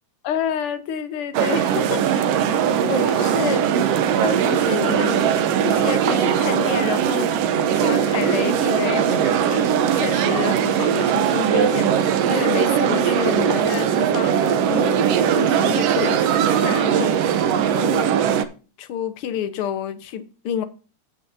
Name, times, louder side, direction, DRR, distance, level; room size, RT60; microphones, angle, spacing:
voice 1, 0.2-2.6 2.8-3.6 4.2-9.7 9.9-17.1 17.6-18.2 18.8-20.6, left 9 dB, 65° left, 1.5 m, -29 dB
sound 1, 1.3-18.5, right 8 dB, 70° right, 1.6 m, -20 dB
16.5 x 6.4 x 2.7 m
omnidirectional pair, 3.6 m